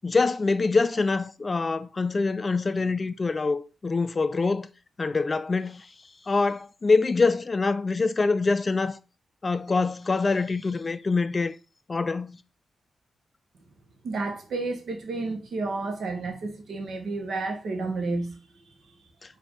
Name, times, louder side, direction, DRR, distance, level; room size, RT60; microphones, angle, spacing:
voice 1, 0.0-4.7 5.0-5.9 6.3-9.0 9.4-11.6 11.9-12.4, left 3 dB, 35° left, 0.3 m, -25 dB
voice 2, 14.0-18.4 18.7-19.0, right 3 dB, 75° right, 1.1 m, -31 dB
5.0 x 2.6 x 3.5 m
cardioid pair, 80°, 0 cm